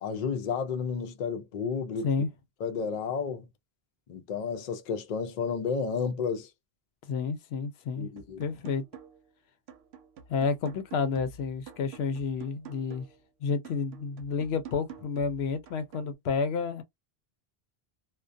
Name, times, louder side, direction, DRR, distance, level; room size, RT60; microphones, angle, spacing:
voice 1, 0.0-2.1 2.6-3.5 4.1-6.5 8.0-8.4, left 5 dB, 55° left, 0.5 m, -31 dB
voice 2, 7.1-8.1 8.4-8.9 10.3-13.1 13.4-16.8, left 5 dB, 90° left, 0.8 m, -30 dB
sound 1, 8.2-9.3 9.7-13.2 13.6-16.2, right 7 dB, 85° right, 0.8 m, -49 dB
2.2 x 2.2 x 2.5 m
omnidirectional pair, 1.0 m